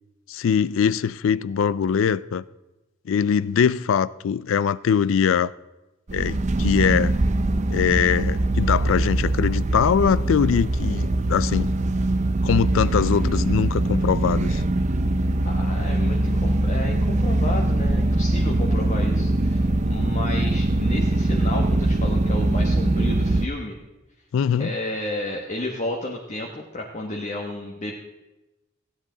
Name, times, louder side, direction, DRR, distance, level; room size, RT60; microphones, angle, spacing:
voice 1, 0.3-2.4 3.1-5.5 6.1-7.2 7.7-11.7 12.4-14.6 24.3-24.7, left 7 dB, 80° left, 0.4 m, -22 dB
sound 1, 6.1-23.5, right 2 dB, 35° right, 0.5 m, -22 dB
voice 2, 15.5-19.6 19.9-23.8 24.6-27.9, left 1 dB, 40° left, 1.1 m, -32 dB
16.0 x 9.9 x 3.9 m
head